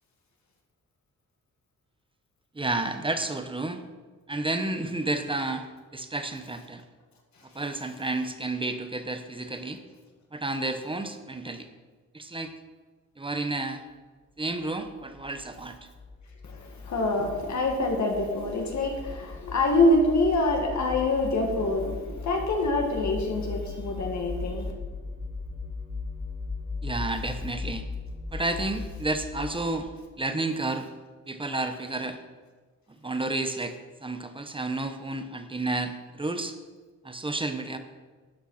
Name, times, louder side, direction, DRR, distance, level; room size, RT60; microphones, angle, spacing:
voice 1, 2.6-3.8 4.3-5.6 5.9-6.8 7.5-9.8 10.3-11.7 12.1-12.5 13.2-13.8 14.4-15.8 26.8-27.8 28.3-29.9 30.2-30.9 31.3-32.2 33.0-33.7 34.0-35.9 36.2-36.5 37.0-37.8, right 2 dB, 15° right, 8 dB, 0.9 m, -31 dB
sound 1, 14.8-30.0, left 4 dB, 35° left, 2.5 m, -38 dB
voice 2, 16.4-24.7, left 2 dB, 60° left, 1 dB, 2.1 m, -25 dB
12.5 x 9.1 x 5.7 m, 1.4 s
wide cardioid pair, 155°, 32 cm